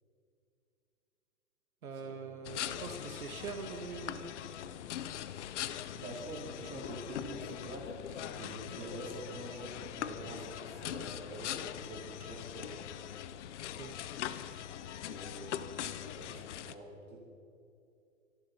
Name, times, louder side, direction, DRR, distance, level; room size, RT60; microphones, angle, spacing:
voice 1, 1.8-4.3 13.7-13.9, right 5 dB, 90° right, 5 dB, 1.7 m, -43 dB
sound 1, 2.4-16.7, left 11 dB, 55° left, 0.9 m, -42 dB
voice 2, 5.9-12.7 14.8-17.3, right 1 dB, 25° right, -3 dB, 4.4 m, -46 dB
25.5 x 11.5 x 4.3 m, 2.6 s
hypercardioid pair, 135°, 41 cm